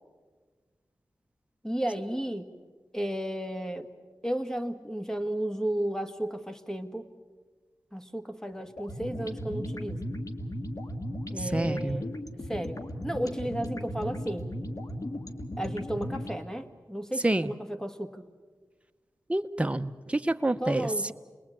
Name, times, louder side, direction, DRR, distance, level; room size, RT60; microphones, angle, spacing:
voice 1, 1.6-2.5 2.9-3.9 4.2-7.1 7.9-10.0 11.3-12.1 12.5-14.5 15.6-18.2 20.6-21.1, right 1 dB, 5° left, 8 dB, 1.8 m, -33 dB
sound 1, 8.8-16.4, equal, 55° left, 1.9 m, -36 dB
voice 2, 11.4-12.0 17.2-17.5 19.3-21.1, right 1 dB, 15° right, 8 dB, 0.9 m, -28 dB
28.0 x 21.0 x 8.8 m, 1.4 s
wide cardioid pair, 70°, 7 cm